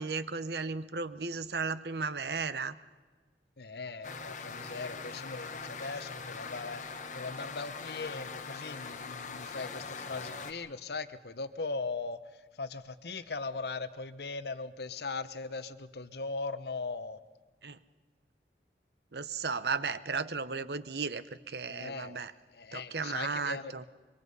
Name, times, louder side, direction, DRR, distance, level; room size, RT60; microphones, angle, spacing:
voice 1, 0.0-2.8 17.6-17.8 19.1-22.3 22.7-23.8, right 4 dB, 65° right, 14 dB, 0.9 m, -35 dB
voice 2, 3.6-12.2 12.6-17.2 21.7-22.2 22.5-23.9, left 3 dB, 65° left, 13 dB, 1.0 m, -39 dB
sound 1, 4.0-10.5, left 4 dB, 45° left, 1.3 m, -42 dB
25.0 x 24.0 x 5.5 m, 1.4 s
head